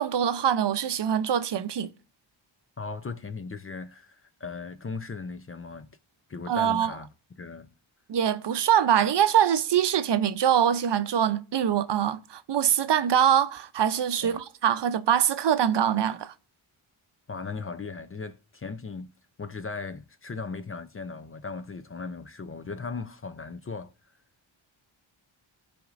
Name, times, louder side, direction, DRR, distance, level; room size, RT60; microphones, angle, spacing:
voice 1, 0.0-1.9 6.5-6.9 8.1-16.3, right 9 dB, 55° right, 0.6 m, -24 dB
voice 2, 2.8-6.0 6.3-7.1 7.4-7.7 14.2-14.4 17.3-19.1 19.4-23.9, left 4 dB, 30° left, 0.6 m, -37 dB
14.5 x 5.1 x 2.5 m
cardioid pair, 65°, 49 cm